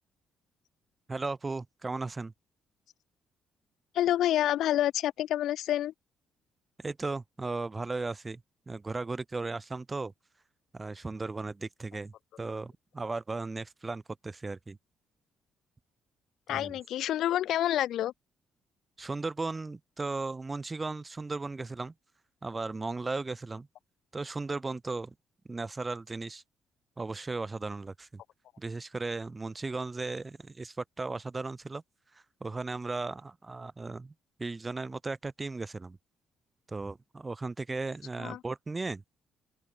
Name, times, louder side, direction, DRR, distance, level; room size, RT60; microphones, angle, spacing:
voice 1, 1.1-2.3 6.8-8.4 8.7-10.1 10.7-14.8 16.5-16.8 19.0-21.9 22.4-23.7 24.1-25.1 25.5-26.4 27.0-28.2 28.6-31.8 32.1-34.1 34.4-36.0 36.7-39.0, right 3 dB, 20° right, 3.6 m, -36 dB
voice 2, 3.9-5.9 16.5-18.1 38.2-38.4, left 12 dB, 75° left, 1.0 m, -28 dB
open air
cardioid pair, 105°, 0 cm